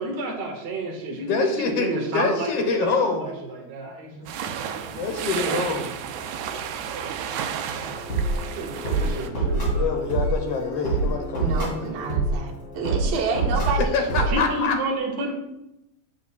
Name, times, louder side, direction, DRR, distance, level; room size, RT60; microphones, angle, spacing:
voice 1, 0.0-4.4 6.5-7.2 8.4-10.0 14.3-15.3, right 2 dB, 50° right, 0 dB, 1.5 m, -31 dB
voice 2, 1.1-3.3 4.1-4.3 4.9-5.9 9.7-12.1 13.5-14.7, left 4 dB, 70° left, 4 dB, 1.5 m, -26 dB
sound 1, 4.3-9.3, right 8 dB, 90° right, 2.0 m, -32 dB
sound 2, 7.7-14.4, right 2 dB, 30° left, 3.2 m, -26 dB
voice 3, 11.4-14.5, right 5 dB, 65° right, -3 dB, 2.1 m, -29 dB
9.6 x 6.2 x 2.2 m, 0.86 s
omnidirectional pair, 3.4 m